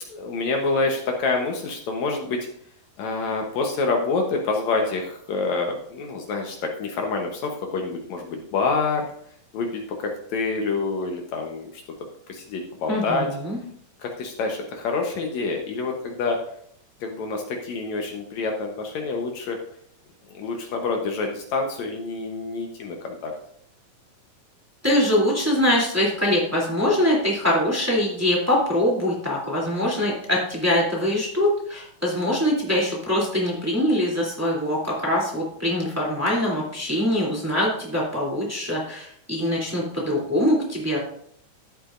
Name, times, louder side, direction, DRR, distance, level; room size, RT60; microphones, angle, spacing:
voice 1, 0.1-2.5 3.0-9.1 9.5-11.8 12.3-13.3 14.0-16.4 17.0-19.6 20.3-23.3, left 3 dB, 70° left, 2 dB, 2.2 m, -27 dB
voice 2, 12.9-13.6 24.8-41.0, left 1 dB, 5° right, -4 dB, 2.4 m, -23 dB
13.0 x 8.2 x 2.5 m, 0.67 s
omnidirectional pair, 3.5 m